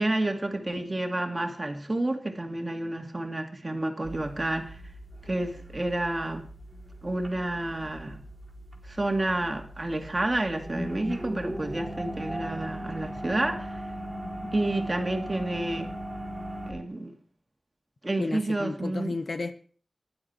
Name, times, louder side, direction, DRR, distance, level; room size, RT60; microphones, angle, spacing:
voice 1, 0.0-4.8 5.3-6.4 7.0-8.2 8.9-13.8 14.5-15.9 16.7-17.1 18.0-19.2, right 2 dB, 30° right, 4 dB, 2.3 m, -30 dB
sound 1, 4.0-16.7, right 1 dB, 15° right, 4.4 m, -39 dB
voice 2, 14.2-14.5 18.2-19.5, left 3 dB, 60° left, 9 dB, 1.1 m, -33 dB
15.5 x 11.0 x 4.5 m, 0.43 s
wide cardioid pair, 90°, 0 cm